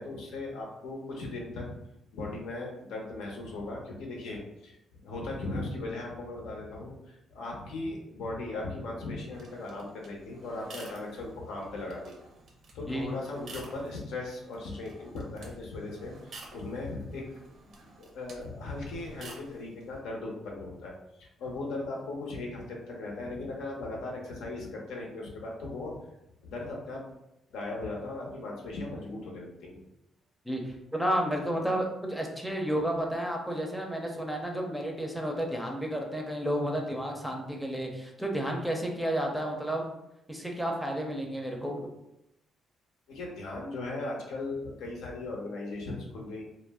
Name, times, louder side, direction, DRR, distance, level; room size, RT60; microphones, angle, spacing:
voice 1, 0.0-1.8 2.1-12.2 12.7-20.9 21.2-25.9 26.4-27.0 27.5-29.8 43.1-46.4, left 2 dB, 90° left, -1 dB, 0.7 m, -38 dB
sound 1, 9.3-20.0, right 2 dB, 65° right, 0.6 m, -51 dB
voice 2, 30.5-39.8 40.3-41.9, right 1 dB, 5° right, 1 dB, 0.5 m, -31 dB
2.5 x 2.0 x 3.4 m, 0.89 s
cardioid pair, 90°, 0 cm